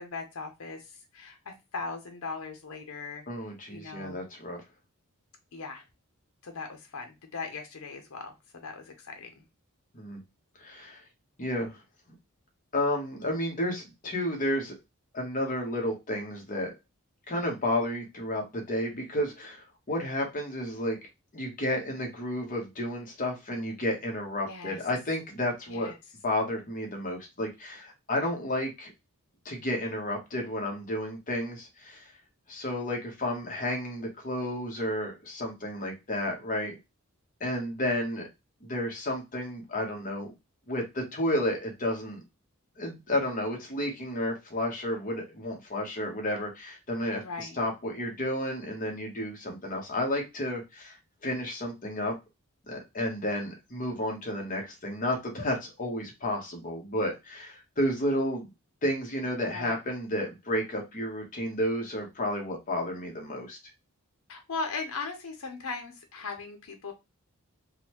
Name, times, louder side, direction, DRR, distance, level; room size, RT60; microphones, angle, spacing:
voice 1, 0.0-3.2 3.7-4.2 5.5-5.8 6.4-9.4 24.4-24.8 25.7-25.9 47.2-47.6 59.5-59.8 64.3-66.9, left 4 dB, 75° left, 5 dB, 0.7 m, -39 dB
voice 2, 3.3-4.6 9.9-10.2 10.6-11.0 11.4-11.8 12.7-14.8 15.1-16.7 17.3-21.0 21.3-25.9 26.2-28.9 29.4-32.1 32.5-36.7 37.4-38.3 38.6-40.3 40.7-42.2 42.8-52.1 52.6-58.5 58.8-63.6, left 1 dB, 40° left, 1 dB, 1.1 m, -31 dB
3.7 x 2.2 x 3.0 m, 0.23 s
head